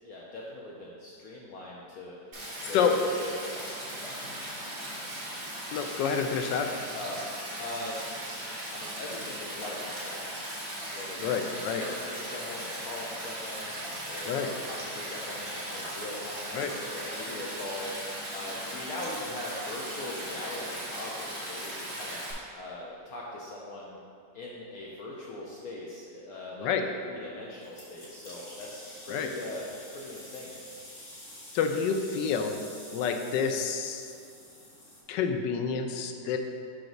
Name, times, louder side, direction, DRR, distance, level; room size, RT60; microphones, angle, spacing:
voice 1, 0.0-3.3 6.2-6.3 6.9-7.2 7.6-8.4 8.6-10.5 10.9-13.7 14.1-17.9 18.3-22.2 22.5-24.0 24.3-29.7 29.9-30.6, left 2 dB, 65° left, -3 dB, 1.0 m, -41 dB
Stream, 2.3-22.3, right 1 dB, 30° right, 1.8 m, -38 dB
voice 2, 2.6-3.0 5.7-6.7 11.2-11.8 14.2-14.5 16.5-16.7 26.6-26.9 29.1-29.3 31.5-32.6 32.9-34.1 35.1-36.4, left 6 dB, 90° left, 5 dB, 1.3 m, -28 dB
sound 1, 27.6-35.0, left 1 dB, 45° left, 1.6 m, -48 dB
6.3 x 3.3 x 5.8 m, 2.4 s
omnidirectional pair, 1.9 m